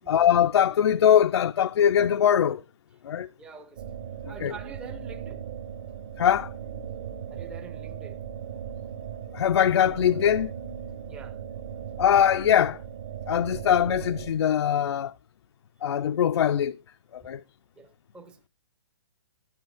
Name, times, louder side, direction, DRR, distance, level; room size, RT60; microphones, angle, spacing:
voice 1, 0.1-2.6 3.0-3.3 4.4-4.5 6.2-6.5 9.3-10.5 12.0-12.8 13.3-15.1 15.8-16.8 17.1-17.4, left 9 dB, 70° left, 0.4 m, -22 dB
voice 2, 3.4-3.9 4.3-5.4 7.3-8.2 11.1-11.4 17.2-17.3 17.8-18.4, right 4 dB, 5° right, 0.5 m, -45 dB
sound 1, 3.8-14.3, right 8 dB, 45° right, 0.9 m, -38 dB
10.5 x 8.9 x 3.4 m
hypercardioid pair, 155°, 14 cm